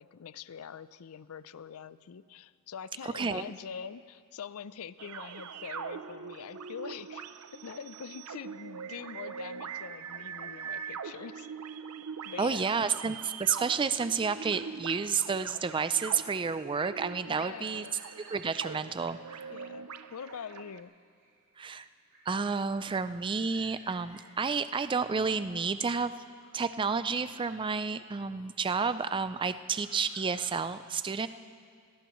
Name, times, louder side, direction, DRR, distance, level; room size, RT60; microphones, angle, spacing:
voice 1, 0.0-7.3 7.5-11.5 12.2-12.7 17.3-18.0 19.5-20.9, left 7 dB, 70° left, 16 dB, 0.4 m, -44 dB
voice 2, 3.1-3.5 12.4-17.9 18.3-19.5 21.6-21.9 22.3-26.1 26.5-31.3, right 5 dB, 20° right, 13 dB, 0.3 m, -30 dB
harmonic madness, 5.0-20.8, right 6 dB, 85° right, 0.6 m, -43 dB
sound 1, 16.7-28.5 29.2-30.5, right 1 dB, 60° right, 4.4 m, -61 dB
24.5 x 18.5 x 3.1 m, 2.2 s
head